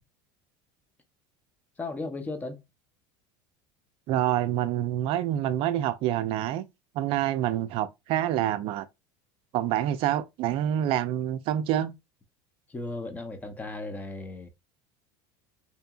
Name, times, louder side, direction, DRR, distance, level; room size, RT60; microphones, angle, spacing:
voice 1, 1.8-2.6 12.7-14.5, left 3 dB, 15° left, 0.5 m, -36 dB
voice 2, 4.1-6.6 6.9-8.9 9.5-11.9, right 12 dB, 50° right, 0.4 m, -27 dB
2.8 x 2.6 x 2.3 m
supercardioid pair, 125°, 12 cm